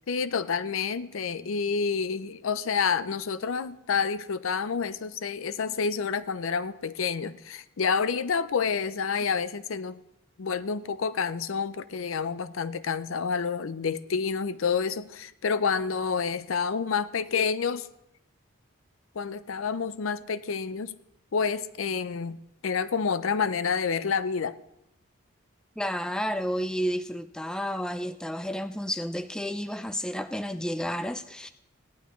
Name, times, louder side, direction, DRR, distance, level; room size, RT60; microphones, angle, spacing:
voice 1, 0.1-10.0 10.4-17.9 19.1-20.9 21.3-22.4 22.6-24.5, left 5 dB, 80° left, 0.5 m, -28 dB
voice 2, 25.8-31.5, equal, 5° left, 0.3 m, -31 dB
17.5 x 11.5 x 3.1 m
head